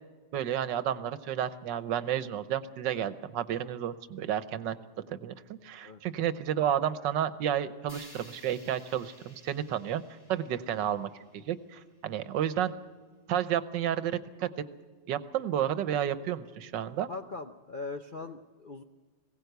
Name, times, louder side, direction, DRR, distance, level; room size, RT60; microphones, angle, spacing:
voice 1, 0.3-4.8 5.1-12.8 13.3-14.5 15.1-17.1, right 10 dB, 85° right, 13 dB, 1.5 m, -31 dB
sound 1, 7.9-12.0, left 1 dB, 10° left, 2.1 m, -55 dB
voice 2, 17.1-18.8, left 3 dB, 55° left, 6 dB, 0.5 m, -40 dB
21.0 x 17.5 x 8.1 m, 1.4 s
omnidirectional pair, 1.9 m